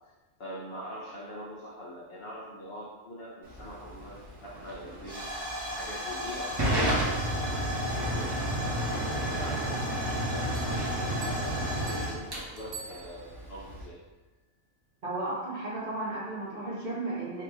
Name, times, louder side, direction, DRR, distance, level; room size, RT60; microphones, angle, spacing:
voice 1, 0.4-5.2 5.6-10.5 10.9-14.0, equal, 55° left, -4 dB, 0.9 m, -44 dB
Hiss / Fire / Tick, 3.4-13.8, equal, 20° right, 0.9 m, -31 dB
sound 1, 10.5-13.6, right 5 dB, 90° right, 1.1 m, -48 dB
voice 2, 15.0-17.4, right 2 dB, 45° right, -7 dB, 1.2 m, -34 dB
3.6 x 2.6 x 4.6 m, 1.2 s
omnidirectional pair, 1.4 m